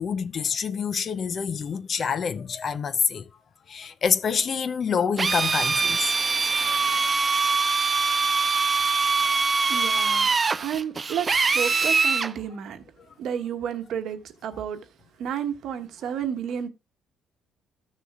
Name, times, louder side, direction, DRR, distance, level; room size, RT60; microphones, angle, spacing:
voice 1, 0.0-3.3 3.7-6.1, left 6 dB, 35° left, 0.5 m, -27 dB
Drill, 5.2-12.3, right 4 dB, 25° right, 0.4 m, -23 dB
voice 2, 9.7-12.8 13.2-14.8 15.2-16.7, right 8 dB, 60° right, 1.1 m, -31 dB
15.0 x 6.5 x 2.4 m
cardioid pair, 150°, 0 cm